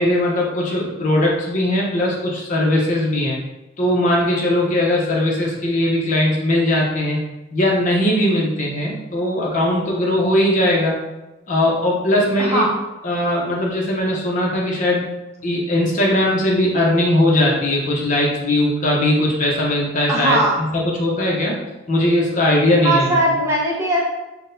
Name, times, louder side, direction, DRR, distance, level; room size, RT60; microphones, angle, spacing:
voice 1, 0.0-3.4 3.8-7.2 7.5-11.0 11.5-12.7 13.0-15.1 15.4-20.4 20.7-21.6 21.9-23.1, left 1 dB, 40° left, -2 dB, 0.8 m, -19 dB
voice 2, 12.4-12.7 20.1-20.6 22.8-24.0, right 1 dB, 15° right, -5 dB, 0.8 m, -19 dB
5.9 x 2.2 x 2.6 m, 1.0 s
head